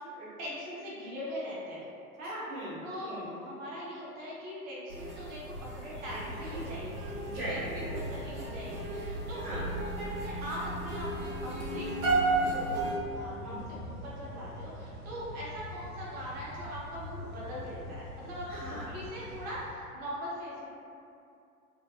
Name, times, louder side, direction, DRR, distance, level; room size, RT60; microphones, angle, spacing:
voice 1, 0.0-1.8 2.2-2.6 2.8-7.1 7.8-20.7, equal, 20° right, -7 dB, 0.4 m, -41 dB
voice 2, 2.5-3.3 7.2-8.1 9.3-9.7 13.4-13.6 18.5-18.8 19.2-19.3, right 1 dB, 75° right, -8 dB, 1.1 m, -40 dB
sound 1, 4.9-12.9, right 2 dB, 50° right, 1.0 m, -34 dB
sound 2, 5.9-19.7, equal, 70° left, 1.1 m, -44 dB
2.8 x 2.1 x 2.2 m, 2.5 s
hypercardioid pair, 95°, 45 cm